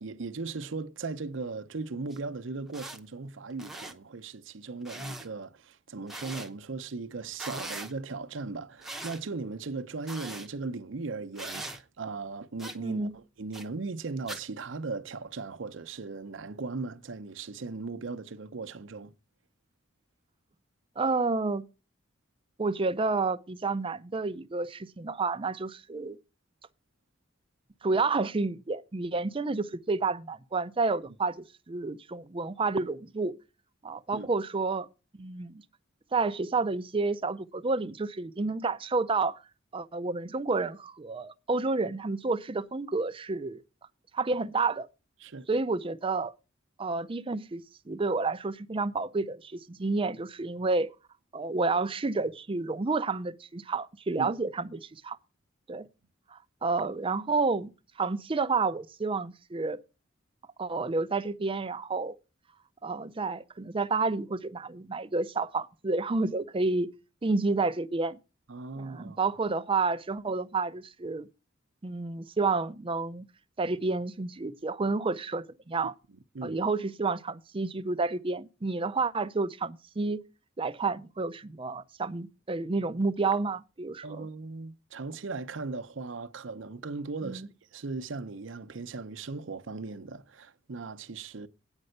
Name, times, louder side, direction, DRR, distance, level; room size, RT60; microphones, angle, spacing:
voice 1, 0.0-19.1 34.1-34.3 45.2-45.5 54.2-54.3 68.5-69.2 76.3-76.6 84.0-91.5, right 3 dB, 70° right, 0.7 m, -38 dB
sound 1, 2.1-2.2 2.7-3.0 3.5-3.9 4.9-5.3 6.1-6.5 7.3-7.9 8.8-9.2 10.1-10.5 11.4-11.8 12.6-12.8 13.5-13.7 14.3-14.4, right 1 dB, ahead, 0.8 m, -40 dB
voice 2, 12.8-13.1 21.0-21.6 22.6-26.2 27.8-31.3 31.7-33.3 33.8-34.9 35.2-35.6 36.1-39.4 39.7-43.6 44.1-44.9 45.5-46.3 46.8-50.9 51.3-55.2 55.7-55.9 56.3-57.7 58.0-59.8 60.6-62.1 62.8-66.9 67.2-68.2 68.8-71.3 71.8-73.2 73.6-75.9 76.4-80.2 80.6-84.3 87.2-87.5, right 3 dB, 25° right, 0.5 m, -30 dB
8.9 x 5.3 x 7.8 m
head